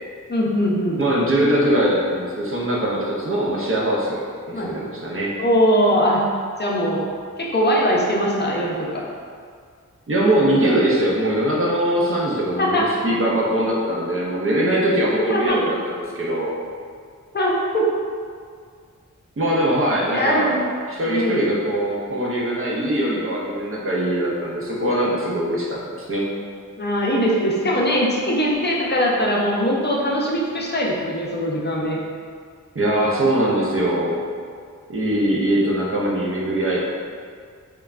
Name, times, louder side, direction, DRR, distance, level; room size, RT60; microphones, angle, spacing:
voice 1, 0.3-1.0 4.5-4.7 5.4-6.2 6.6-7.0 7.4-9.0 12.6-12.9 15.3-15.6 17.3-17.9 20.1-20.8 21.1-21.5 26.8-32.0, equal, 35° left, -3 dB, 0.5 m, -21 dB
voice 2, 1.0-4.2 4.5-5.3 10.1-16.5 19.4-20.5 20.9-26.2 32.7-34.2 34.9-36.8, right 1 dB, 45° right, -5 dB, 0.5 m, -21 dB
3.1 x 2.2 x 2.4 m, 2.1 s
wide cardioid pair, 65°, 32 cm